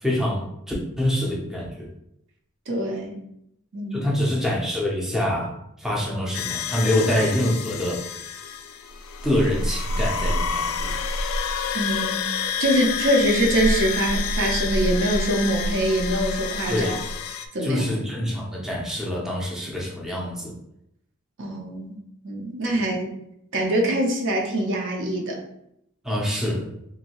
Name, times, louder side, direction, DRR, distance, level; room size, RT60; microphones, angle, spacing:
voice 1, 0.0-1.9 3.9-8.4 9.2-11.0 16.7-17.0 17.6-20.5 22.7-22.8 26.0-26.7, left 1 dB, ahead, -4 dB, 0.5 m, -26 dB
voice 2, 2.7-3.2 3.7-4.0 11.7-12.2 12.6-16.9 17.5-18.1 21.4-22.0 22.2-23.1 23.5-25.4, right 1 dB, 60° right, 0 dB, 0.6 m, -24 dB
sound 1, 6.3-17.5, left 4 dB, 75° left, 0.3 m, -28 dB
2.9 x 2.6 x 2.9 m, 0.78 s
head